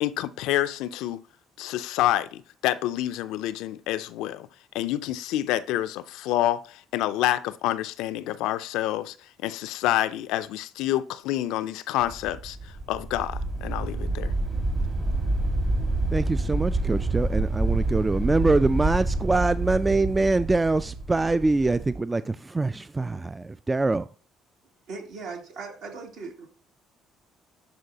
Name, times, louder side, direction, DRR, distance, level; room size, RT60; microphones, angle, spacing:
voice 1, 0.0-1.2 1.6-4.5 4.7-9.1 9.4-12.6 12.9-14.3, left 14 dB, 75° left, 0.4 m, -28 dB
sound 1, 12.0-22.0, right 2 dB, 40° right, 2.0 m, -28 dB
voice 2, 16.1-24.1, right 3 dB, 20° right, 0.3 m, -24 dB
voice 3, 24.9-26.5, right 4 dB, 70° right, 2.4 m, -38 dB
11.0 x 3.8 x 2.8 m
hypercardioid pair, 55°, 0 cm